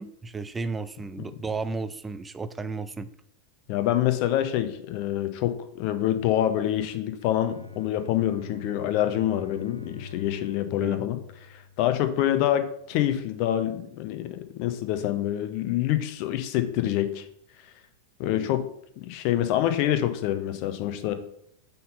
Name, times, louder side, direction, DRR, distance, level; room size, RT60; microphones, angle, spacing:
voice 1, 0.0-3.1 10.8-11.1 18.2-18.5, right 3 dB, 15° right, 12 dB, 0.4 m, -34 dB
voice 2, 3.7-11.2 11.8-17.3 18.2-18.7 19.1-21.1, left 12 dB, 45° left, 10 dB, 0.7 m, -26 dB
Bowed string instrument, 7.2-12.5, left 3 dB, 80° left, 0.6 m, -44 dB
5.4 x 3.8 x 5.4 m, 0.69 s
figure-of-eight pair, 90°, 0 cm